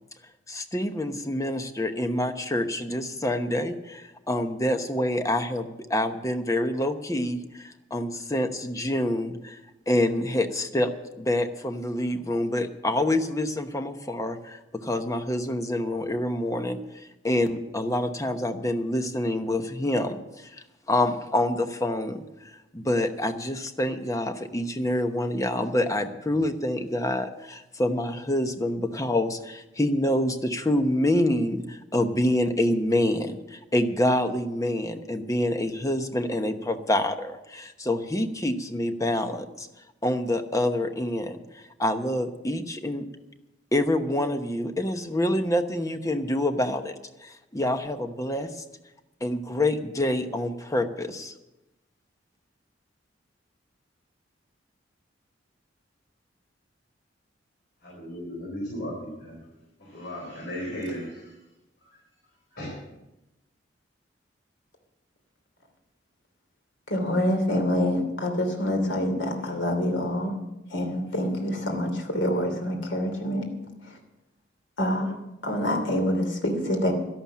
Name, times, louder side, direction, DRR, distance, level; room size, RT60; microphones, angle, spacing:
voice 1, 0.5-9.6 9.9-10.9 11.2-20.2 20.9-22.2 22.7-39.7 40.0-41.4 41.8-43.0 43.7-46.9 47.2-48.5 49.2-51.3, left 1 dB, 20° left, 8 dB, 1.0 m, -27 dB
voice 2, 57.8-59.4 59.8-61.3 61.8-62.0 62.5-62.8, equal, 55° left, -4 dB, 4.6 m, -36 dB
voice 3, 66.9-70.4 70.7-73.5 73.8-74.0 74.8-75.1 75.4-76.9, left 1 dB, 75° left, 4 dB, 2.9 m, -26 dB
12.5 x 11.5 x 7.4 m, 0.96 s
head